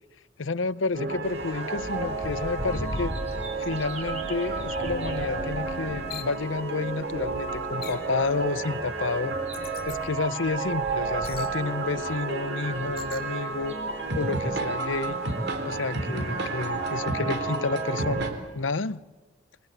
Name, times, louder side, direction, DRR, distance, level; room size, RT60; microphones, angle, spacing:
voice 1, 0.4-3.1 3.6-9.4 9.8-13.8 14.1-15.2 15.6-19.0, left 3 dB, 80° left, 0.8 m, -30 dB
sound 1, 0.9-18.3, right 3 dB, 60° right, 3.9 m, -31 dB
sound 2, 1.2-17.0, equal, 35° right, 5.5 m, -41 dB
sound 3, 6.1-6.4 7.8-8.1 9.5-10.0 11.2-11.5 13.0-13.3, left 11 dB, 50° left, 2.5 m, -41 dB
30.0 x 22.5 x 8.0 m
head